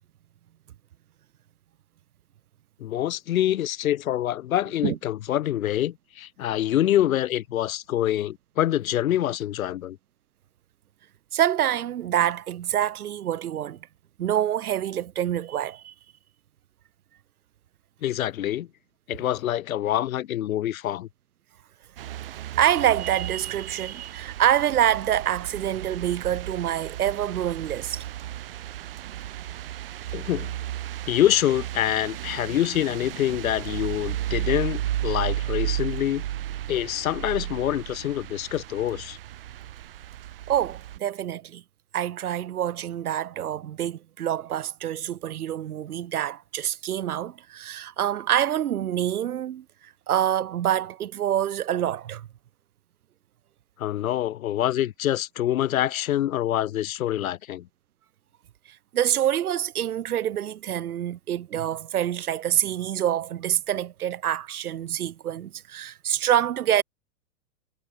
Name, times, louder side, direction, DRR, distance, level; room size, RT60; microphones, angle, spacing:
voice 1, 2.8-10.0 18.0-18.7 19.1-21.1 30.1-30.5 31.1-36.2 36.7-39.2 53.8-57.7, left 12 dB, 70° left, 1.0 m, -26 dB
voice 2, 11.3-13.8 14.2-15.9 22.6-28.0 40.5-41.6 41.9-49.6 50.1-52.3 58.9-66.8, right 11 dB, 75° right, 1.5 m, -26 dB
sound 1, 22.0-41.0, right 12 dB, 40° right, 0.7 m, -34 dB
hypercardioid pair, 170°, 44 cm